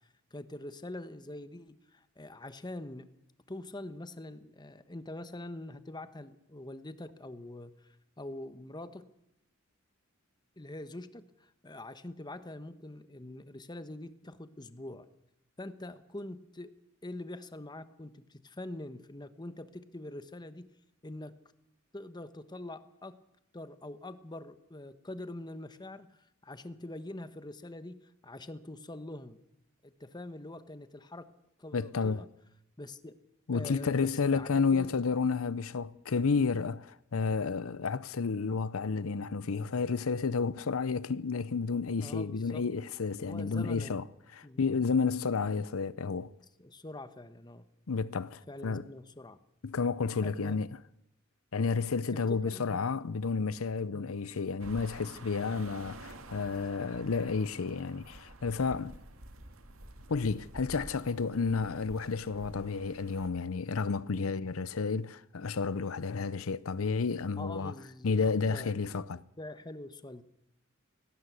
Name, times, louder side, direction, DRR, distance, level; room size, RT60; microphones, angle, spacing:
voice 1, 0.3-3.1 3.5-9.1 10.6-15.1 15.6-16.7 17.0-20.7 21.0-21.4 21.9-23.2 23.5-26.1 26.4-29.4 29.8-31.3 31.6-32.3 32.8-33.2 33.5-34.9 42.0-42.7 43.2-44.0 44.4-44.6 45.0-45.2 46.6-47.7 48.5-49.4 50.2-50.6 52.1-52.8 53.9-54.1 67.4-69.0 69.4-70.2, left 1 dB, 20° left, 1.1 m, -44 dB
voice 2, 31.7-32.3 33.5-44.1 44.3-46.3 47.9-48.8 49.6-50.8 51.5-59.0 60.1-67.8 68.0-69.2, left 4 dB, 90° left, 0.6 m, -31 dB
sound 1, 54.6-63.3, right 1 dB, 80° right, 2.1 m, -49 dB
18.0 x 17.5 x 8.3 m
head